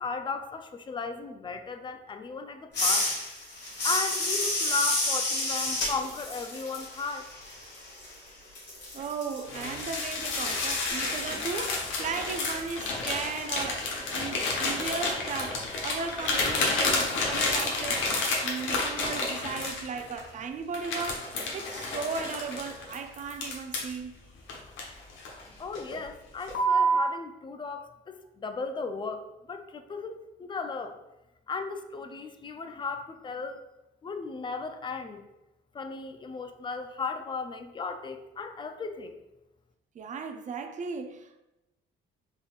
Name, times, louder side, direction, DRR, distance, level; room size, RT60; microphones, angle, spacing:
voice 1, 0.0-3.1 3.8-7.3 25.6-31.0 31.5-33.6 34.0-35.2 35.7-39.2, left 4 dB, 25° left, 0.4 m, -36 dB
sound 1, 2.7-8.3 8.6-13.4, left 2 dB, 60° left, 1.4 m, -31 dB
voice 2, 8.9-18.1 18.4-24.2 39.9-41.4, right 5 dB, 40° right, 0.4 m, -36 dB
sound 2, 9.5-20.2 20.7-24.0 24.5-25.4 25.7-26.0 26.5-27.0, left 1 dB, 75° left, 0.8 m, -30 dB
3.7 x 3.6 x 2.3 m
cardioid pair, 90°, 20 cm